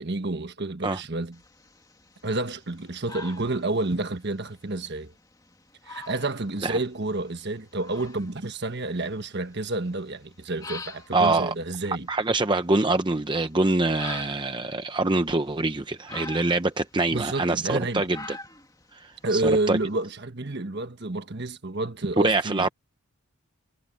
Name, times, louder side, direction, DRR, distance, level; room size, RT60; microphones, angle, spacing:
voice 1, 0.0-1.4 2.2-5.1 5.8-12.1 17.1-18.1 19.2-22.7, right 2 dB, 50° right, 1.4 m, -29 dB
sound 1, 1.3-20.0, left 3 dB, 15° left, 2.4 m, -46 dB
voice 2, 11.1-11.5 12.1-18.4 18.9-19.8 22.2-22.7, right 2 dB, 20° right, 0.7 m, -25 dB
head